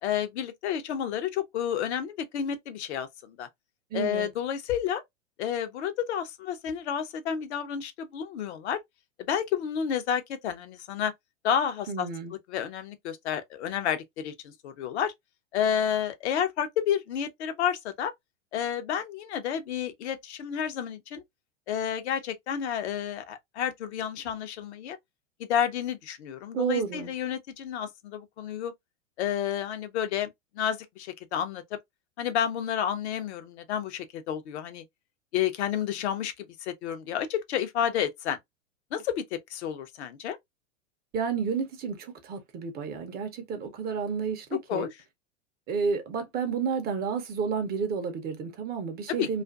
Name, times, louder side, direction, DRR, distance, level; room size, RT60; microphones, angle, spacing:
voice 1, 0.0-3.5 3.9-5.0 5.4-8.8 9.2-11.1 11.4-12.1 12.5-15.1 15.5-18.1 18.5-21.2 21.7-25.0 25.5-28.7 29.2-30.3 30.5-31.8 32.2-34.8 35.3-38.4 38.9-40.4 44.7-44.9 49.1-49.4, left 9 dB, 60° left, 0.7 m, -30 dB
voice 2, 3.9-4.3 11.9-12.3 26.5-27.1 41.1-44.9 45.7-49.4, right 6 dB, 25° right, 0.6 m, -31 dB
2.5 x 2.4 x 2.3 m
hypercardioid pair, 100°, 38 cm